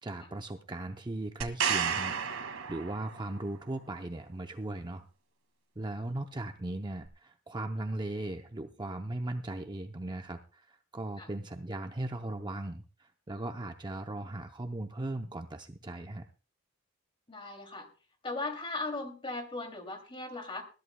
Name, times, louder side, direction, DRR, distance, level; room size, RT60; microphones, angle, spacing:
voice 1, 0.0-2.2 2.7-5.1 5.8-16.3, right 2 dB, 20° right, 6 dB, 0.6 m, -38 dB
sound 1, 1.4-3.4 7.1-7.2, right 7 dB, 80° right, 2.0 m, -32 dB
voice 2, 17.3-17.9 18.2-20.6, left 2 dB, 25° left, 5 dB, 2.7 m, -38 dB
21.0 x 14.0 x 2.2 m, 0.36 s
head